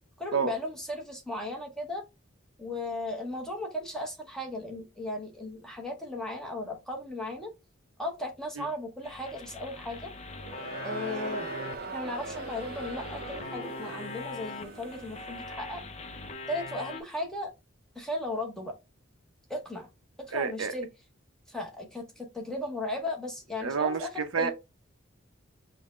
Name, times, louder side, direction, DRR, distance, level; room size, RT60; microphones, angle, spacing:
voice 1, 0.2-2.0 2.6-7.5 8.0-10.1 10.8-11.5 11.8-15.8 16.5-17.5 17.9-18.7 19.5-19.9 20.3-20.9 21.5-24.5, left 1 dB, 5° left, 0.9 m, -36 dB
sound 1, 9.0-17.0, left 3 dB, 30° left, 0.5 m, -42 dB
Crowd, 10.4-15.4, right 3 dB, 45° right, 0.4 m, -40 dB
voice 2, 20.3-20.7 23.6-24.5, right 5 dB, 85° right, 0.7 m, -29 dB
5.3 x 2.2 x 3.0 m
head